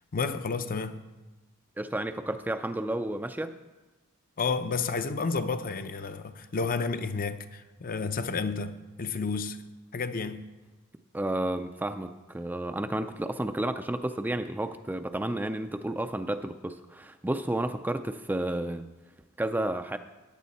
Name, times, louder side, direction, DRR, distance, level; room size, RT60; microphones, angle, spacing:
voice 1, 0.1-1.0 4.4-9.6 9.9-10.4, left 4 dB, 40° left, 0.6 m, -31 dB
voice 2, 1.8-3.5 11.1-18.9 19.4-20.0, right 1 dB, 10° right, 0.4 m, -31 dB
15.0 x 10.0 x 4.1 m
head